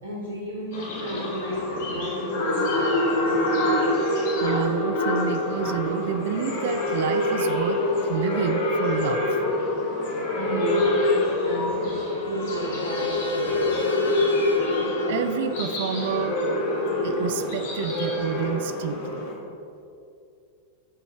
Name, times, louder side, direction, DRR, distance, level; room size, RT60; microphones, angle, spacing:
voice 1, 0.0-4.1 10.3-13.9, right 1 dB, 75° right, -6 dB, 1.3 m, -33 dB
sound 1, 0.7-19.3, left 2 dB, 55° left, 1.4 m, -25 dB
voice 2, 4.4-7.8 8.1-9.4 15.1-16.4 17.0-19.3, right 9 dB, 55° right, 10 dB, 0.4 m, -29 dB
Trumpet, 10.9-15.7, left 2 dB, 80° left, 0.8 m, -42 dB
8.0 x 4.9 x 4.4 m, 2.5 s
figure-of-eight pair, 90°, 0 cm